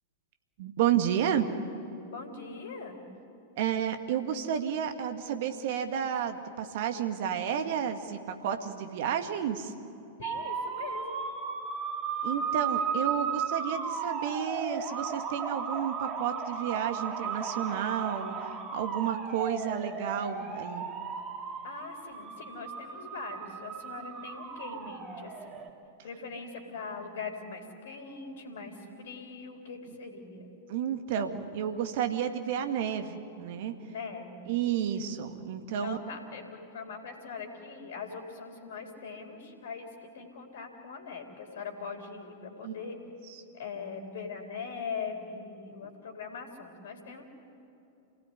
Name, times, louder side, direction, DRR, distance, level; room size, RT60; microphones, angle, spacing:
voice 1, 0.6-1.5 3.6-9.7 12.2-20.9 30.7-33.8 34.5-36.0 42.6-42.8 43.3-43.4, right 9 dB, 55° right, 7 dB, 2.1 m, -31 dB
voice 2, 2.1-3.0 10.2-11.2 17.6-17.8 21.6-25.6 26.0-30.5 33.9-34.5 35.8-43.0 43.5-47.2, left 5 dB, 60° left, 3 dB, 3.8 m, -41 dB
sound 1, 10.2-25.7, right 6 dB, 30° right, 2.7 m, -35 dB
28.0 x 18.0 x 9.9 m, 2.8 s
figure-of-eight pair, 100°, 0 cm